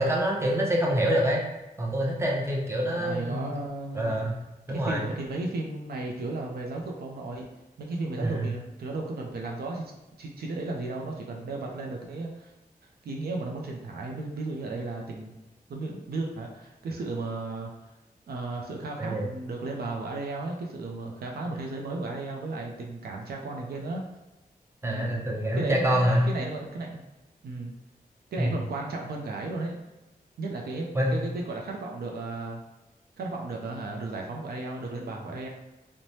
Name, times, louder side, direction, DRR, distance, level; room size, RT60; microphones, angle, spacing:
voice 1, 0.0-1.4 1.8-3.5 3.9-4.3 4.7-5.0 8.2-8.5 19.0-19.3 24.8-26.3 28.4-28.6 30.9-31.2, equal, 15° right, -2 dB, 0.6 m, -26 dB
voice 2, 2.9-4.2 4.7-7.5 7.8-9.9 10.2-12.5 13.0-15.3 15.7-17.7 18.3-24.0 24.8-25.2 25.5-27.0 27.4-27.7 28.3-29.8 30.4-32.6 33.2-35.5, right 2 dB, 90° right, 0 dB, 0.4 m, -34 dB
3.1 x 2.1 x 2.7 m, 1.0 s
cardioid pair, 70°, 16 cm